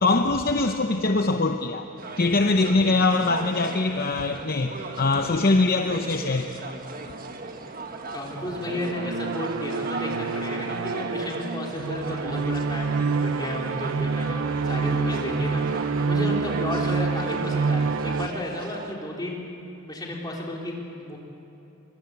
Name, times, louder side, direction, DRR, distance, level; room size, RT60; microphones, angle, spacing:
voice 1, 0.0-1.8 2.2-6.7, left 3 dB, 45° left, 5 dB, 0.8 m, -23 dB
sound 1, 2.0-18.9, right 3 dB, 40° right, 1.5 m, -37 dB
voice 2, 8.1-19.5 19.8-21.2, left 1 dB, 20° left, -2 dB, 3.8 m, -33 dB
sound 2, 8.4-18.3, right 4 dB, 65° right, 0.5 m, -27 dB
25.0 x 22.5 x 8.3 m, 2.9 s
head